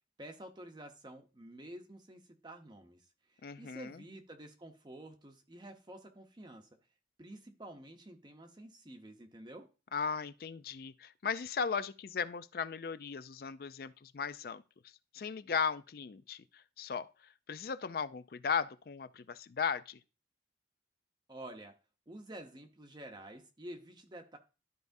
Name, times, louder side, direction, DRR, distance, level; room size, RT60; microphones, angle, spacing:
voice 1, 0.2-6.7 7.2-9.7 21.3-21.8 22.1-24.4, right 1 dB, 25° right, 0.8 m, -50 dB
voice 2, 3.4-4.0 9.9-14.6 15.1-17.1 17.5-20.0, left 6 dB, 55° left, 0.4 m, -37 dB
12.5 x 4.7 x 2.6 m
head